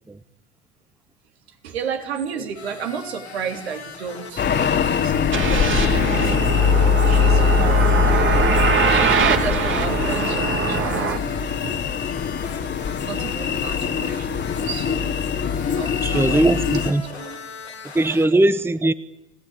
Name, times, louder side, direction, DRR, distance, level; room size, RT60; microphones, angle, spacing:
voice 1, 1.5-6.4 7.0-8.1 8.9-11.8 12.8-15.2 15.8-17.8 18.1-18.2, right 7 dB, 75° right, 3.3 m, -33 dB
sound 1, 2.5-18.3, left 5 dB, 90° left, 2.9 m, -40 dB
sound 2, 4.4-16.9, left 7 dB, 35° left, 2.2 m, -22 dB
sound 3, 5.3-11.2, right 6 dB, 40° right, 2.5 m, -22 dB
voice 2, 16.0-17.0 17.9-18.9, right 2 dB, 5° right, 1.0 m, -19 dB
26.5 x 17.5 x 8.7 m
figure-of-eight pair, 65°, 32 cm